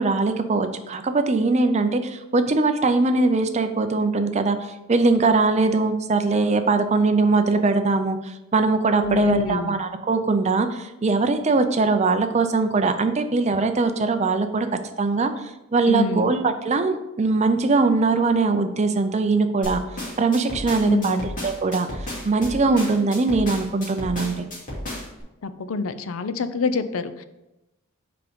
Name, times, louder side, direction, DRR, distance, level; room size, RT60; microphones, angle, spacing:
voice 1, 0.0-14.7 15.0-19.8 20.2-21.2 21.4-24.5, right 3 dB, 30° right, 8 dB, 0.5 m, -21 dB
voice 2, 9.0-9.8 15.9-16.3 20.8-21.3 25.4-27.2, left 3 dB, 75° left, 12 dB, 0.5 m, -25 dB
sound 1, 19.6-25.2, left 1 dB, 40° left, 2.7 m, -33 dB
5.9 x 5.0 x 5.1 m, 0.96 s
head